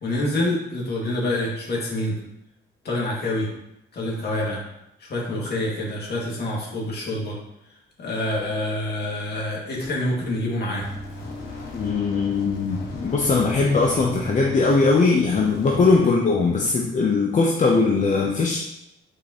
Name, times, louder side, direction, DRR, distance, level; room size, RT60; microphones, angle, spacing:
voice 1, 0.0-2.1 2.8-3.5 3.9-4.6 5.0-7.4 8.0-10.9 16.0-16.1, left 1 dB, 55° left, -3 dB, 2.2 m, -26 dB
sound 1, 10.7-16.0, left 1 dB, 80° left, 1.8 m, -36 dB
voice 2, 11.7-18.6, left 4 dB, 40° left, -1 dB, 0.8 m, -20 dB
6.4 x 5.1 x 3.0 m, 0.84 s
cardioid pair, 90°, 20 cm